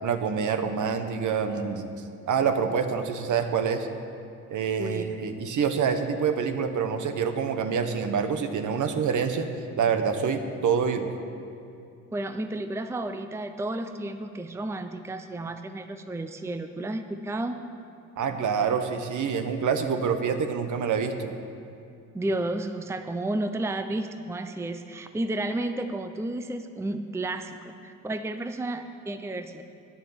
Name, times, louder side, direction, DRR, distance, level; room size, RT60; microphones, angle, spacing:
voice 1, 0.0-3.9 4.5-9.5 9.8-11.1 18.2-21.3, right 6 dB, 55° right, 8 dB, 1.0 m, -26 dB
voice 2, 4.8-5.1 12.1-17.6 22.1-29.6, right 2 dB, 10° right, 8 dB, 0.6 m, -32 dB
9.8 x 7.1 x 7.2 m, 2.7 s
supercardioid pair, 60°, 36 cm